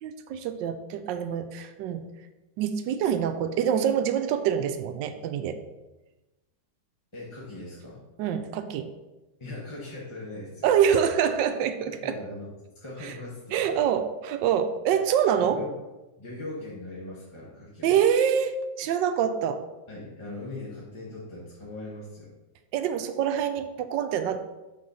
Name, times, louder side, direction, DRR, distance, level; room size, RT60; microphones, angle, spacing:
voice 1, 0.0-2.1 2.6-5.6 8.2-8.9 10.6-12.1 13.0-13.1 13.5-15.6 17.8-19.6 22.7-24.4, right 8 dB, 85° right, 9 dB, 1.2 m, -25 dB
voice 2, 7.1-8.0 9.4-10.7 11.9-13.9 15.4-15.8 16.2-18.0 19.9-22.3, left 2 dB, 20° left, -6 dB, 0.9 m, -40 dB
6.4 x 3.9 x 5.5 m, 1.1 s
omnidirectional pair, 1.9 m